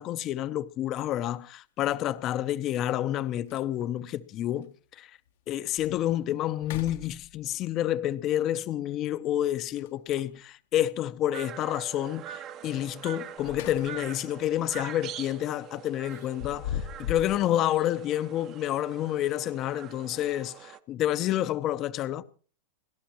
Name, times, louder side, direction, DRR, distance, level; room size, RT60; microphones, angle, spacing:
voice 1, 0.0-5.2 5.5-22.2, left 12 dB, 40° left, 0.7 m, -29 dB
sound 1, 0.8-0.9 2.6-2.7 3.1-3.2 3.5-4.0 4.6-4.7 5.3-5.4 5.8-6.1 6.5-7.6 9.7-10.4 13.1-14.2 14.6-14.8 16.1-17.4, left 9 dB, 70° left, 1.0 m, -39 dB
sound 2, 11.3-20.8, right 10 dB, 40° right, 1.0 m, -44 dB
29.0 x 12.0 x 3.0 m
supercardioid pair, 125°, 0 cm